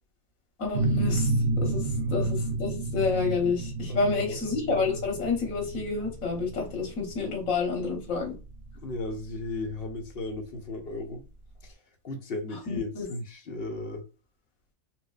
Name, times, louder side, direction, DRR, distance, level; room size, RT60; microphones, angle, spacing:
voice 1, 0.6-1.3 1.6-1.8 2.1-8.3 12.7-13.1, left 4 dB, 75° left, 1.6 m, -29 dB
sound 1, 0.7-10.1, right 2 dB, 75° right, 1.2 m, -30 dB
voice 2, 3.9-4.4 8.8-11.2 11.6-11.7 12.0-14.0, left 2 dB, 50° left, 0.9 m, -35 dB
4.3 x 2.5 x 2.3 m
omnidirectional pair, 1.4 m